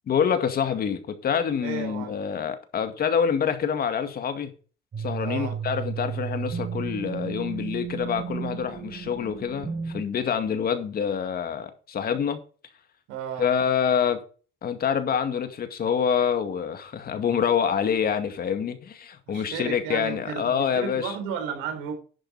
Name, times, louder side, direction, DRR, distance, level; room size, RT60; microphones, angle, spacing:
voice 1, 0.1-4.5 5.0-12.4 13.4-14.2 14.6-21.1, left 7 dB, 45° left, 2.2 m, -26 dB
voice 2, 1.6-2.2 5.2-5.6 13.1-13.5 19.3-21.9, right 6 dB, 90° right, 3.9 m, -33 dB
sound 1, 4.9-10.0, right 7 dB, 40° right, 3.5 m, -33 dB
11.5 x 7.8 x 4.2 m
cardioid pair, 105°, 21 cm